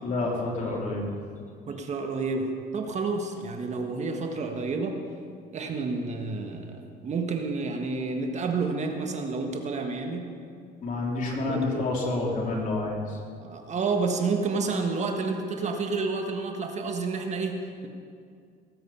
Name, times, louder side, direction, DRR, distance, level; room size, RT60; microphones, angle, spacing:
voice 1, 0.0-1.1 10.8-13.2, left 2 dB, 50° left, -2 dB, 3.3 m, -29 dB
voice 2, 1.7-5.0 5.5-10.3 11.3-11.9 13.4-17.9, right 4 dB, 45° right, 4 dB, 1.5 m, -30 dB
18.5 x 7.9 x 5.7 m, 2.3 s
cardioid pair, 110°, 17 cm